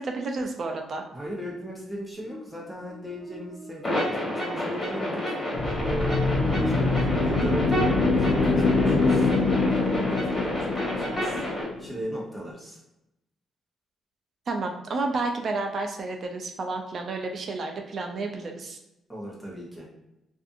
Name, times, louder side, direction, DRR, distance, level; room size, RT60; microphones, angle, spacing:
voice 1, 0.0-1.0 14.5-18.8, right 3 dB, 50° right, 3 dB, 0.4 m, -31 dB
voice 2, 1.1-9.3 9.6-11.4 11.8-12.8 19.1-19.9, equal, 5° right, -3 dB, 0.9 m, -37 dB
Buzz, 2.2-11.7, equal, 70° right, 0.9 m, -42 dB
sound 1, 3.8-11.6, left 1 dB, 30° left, 1.5 m, -30 dB
sound 2, 5.5-12.0, left 3 dB, 75° left, 0.4 m, -24 dB
2.5 x 2.4 x 2.5 m, 0.89 s
cardioid pair, 90°, 0 cm